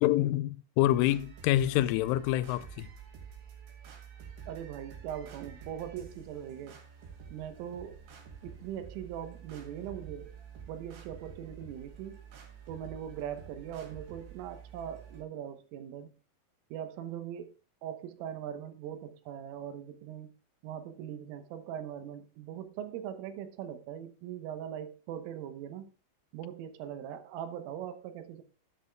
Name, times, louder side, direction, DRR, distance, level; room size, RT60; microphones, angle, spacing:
voice 1, 0.0-2.9, left 14 dB, 85° left, 3.0 m, -27 dB
sound 1, 0.9-15.2, right 7 dB, 70° right, 4.2 m, -49 dB
voice 2, 4.5-6.8 7.3-8.0 8.4-10.4 10.7-12.2 12.7-16.1 16.7-17.5 17.8-20.3 20.6-25.9 26.3-28.4, right 10 dB, 85° right, 3.6 m, -41 dB
12.5 x 9.7 x 2.3 m
omnidirectional pair, 5.7 m